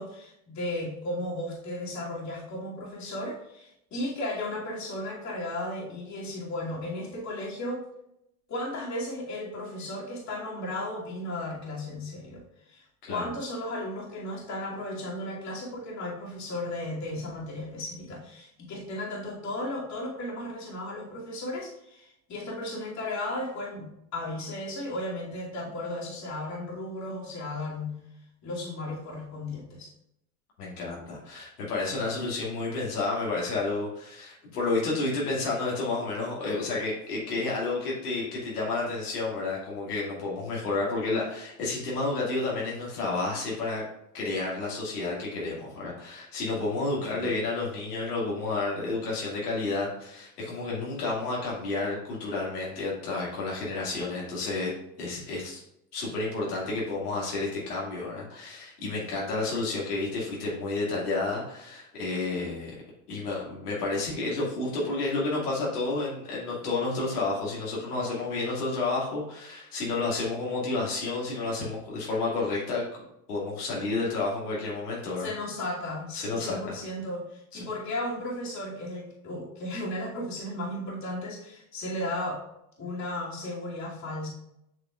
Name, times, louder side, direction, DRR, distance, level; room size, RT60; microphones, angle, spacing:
voice 1, 0.0-7.8 8.5-12.4 12.7-27.9 28.4-29.9 47.1-47.3 75.2-82.4 82.8-84.3, left 1 dB, 40° left, -4 dB, 2.5 m, -35 dB
voice 2, 30.6-43.8 44.1-54.7 55.0-55.6 55.9-62.7 63.1-72.8 73.3-75.3 76.1-76.8 77.5-77.6, left 3 dB, 85° left, -5 dB, 2.3 m, -30 dB
7.5 x 5.9 x 2.4 m, 0.80 s
hypercardioid pair, 85°, 45 cm